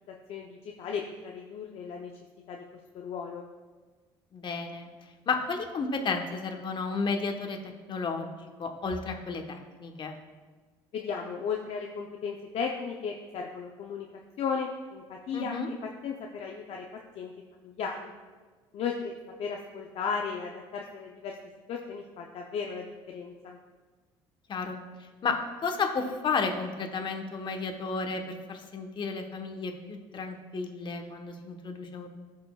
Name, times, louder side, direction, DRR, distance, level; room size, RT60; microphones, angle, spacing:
voice 1, 0.3-2.1 2.5-2.6 2.9-3.5 10.9-14.1 14.4-15.6 16.0-16.8 17.1-18.1 18.7-21.3 21.7-23.6, left 6 dB, 60° left, 1 dB, 0.7 m, -35 dB
voice 2, 4.3-4.9 5.3-7.6 7.9-8.3 8.6-10.2 15.3-15.7 24.5-24.8 25.2-32.1, left 4 dB, 45° left, 4 dB, 1.2 m, -32 dB
15.0 x 5.2 x 2.4 m, 1.4 s
supercardioid pair, 75°, 11 cm